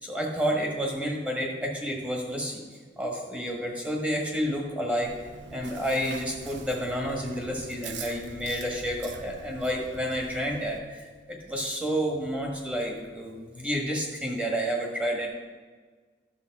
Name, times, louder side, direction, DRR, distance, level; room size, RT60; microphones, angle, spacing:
voice 1, 0.0-2.6 3.0-5.1 5.5-15.3, equal, 5° right, 0 dB, 1.5 m, -30 dB
Chewing mastication, 5.0-10.8, right 4 dB, 90° right, 0.7 m, -44 dB
11.5 x 6.9 x 4.7 m, 1.5 s
head